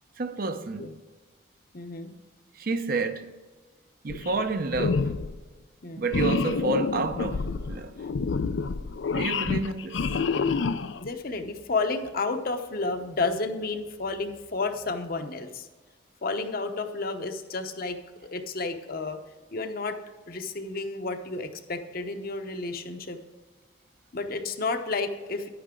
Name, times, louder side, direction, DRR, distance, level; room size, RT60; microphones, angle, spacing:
voice 1, 0.2-0.9 2.6-3.3 4.0-5.1 6.0-7.9 9.1-10.0, right 3 dB, 50° right, 0.6 m, -29 dB
voice 2, 1.7-2.1 5.8-6.1 8.6-8.8 11.0-15.7 16.2-18.0 18.3-19.2 19.5-20.0 20.3-23.2 24.1-25.5, left 3 dB, 55° left, 0.9 m, -31 dB
sound 1, 4.1-4.5 4.7-5.4 6.1-11.1, left 4 dB, 80° left, 0.5 m, -28 dB
10.5 x 9.3 x 3.8 m
head